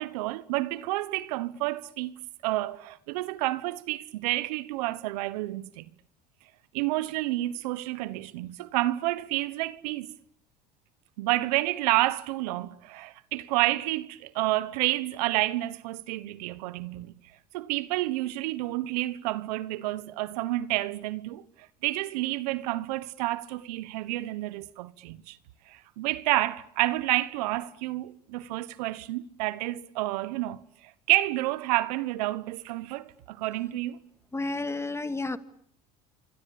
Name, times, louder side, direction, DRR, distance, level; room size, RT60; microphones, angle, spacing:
voice 1, 0.0-2.1 2.4-5.8 6.7-10.1 11.2-17.1 17.5-21.4 21.8-25.4 25.7-34.0, right 17 dB, 85° right, 1.2 m, -29 dB
voice 2, 34.3-35.4, left 2 dB, 15° left, 2.1 m, -31 dB
27.5 x 24.5 x 8.6 m
supercardioid pair, 85°, 20 cm